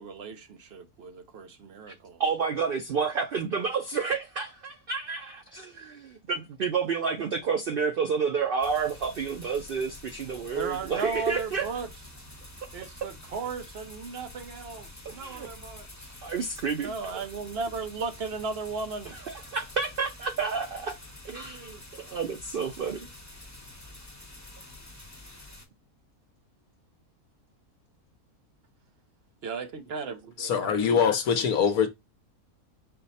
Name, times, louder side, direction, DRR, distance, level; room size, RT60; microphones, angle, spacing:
voice 1, 0.0-2.2 10.5-11.9 12.7-16.1 16.8-19.2 29.4-30.5, right 4 dB, 55° right, 0.7 m, -36 dB
voice 2, 2.2-11.7 15.1-15.5 16.2-17.2 19.0-21.0 21.2-23.1, right 5 dB, 90° right, 0.4 m, -30 dB
sound 1, 8.6-25.6, left 1 dB, 15° left, 0.8 m, -47 dB
voice 3, 30.4-31.9, left 7 dB, 75° left, 1.2 m, -23 dB
5.5 x 2.0 x 4.0 m
omnidirectional pair, 1.6 m